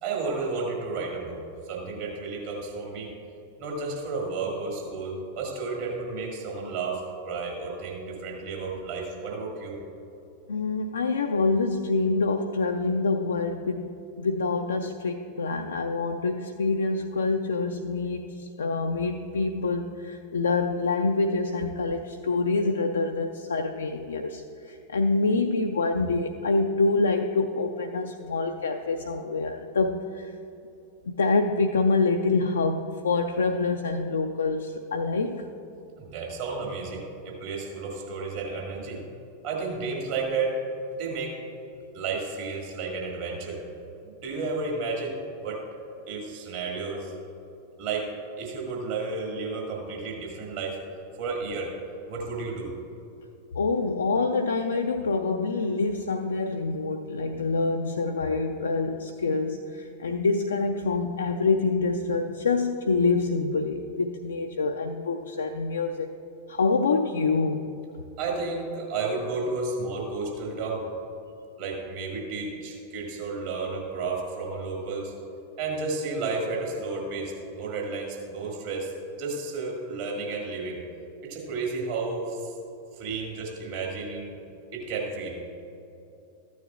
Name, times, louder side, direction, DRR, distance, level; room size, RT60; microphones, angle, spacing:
voice 1, 0.0-1.4 1.7-3.1 3.6-9.8 36.0-39.0 39.4-40.6 40.9-41.4 41.9-43.6 44.0-45.6 46.1-47.1 47.8-48.1 48.4-50.8 51.2-51.8 52.1-52.8 68.2-70.9 71.6-75.1 75.6-80.8 81.2-82.5 83.0-84.4 84.7-85.4, right 3 dB, 50° right, -1 dB, 2.0 m, -32 dB
voice 2, 10.5-30.3 31.0-35.5 53.5-66.1 66.5-67.7, left 3 dB, 70° left, 4 dB, 0.4 m, -26 dB
14.5 x 9.4 x 2.4 m, 2.8 s
figure-of-eight pair, 90°, 0 cm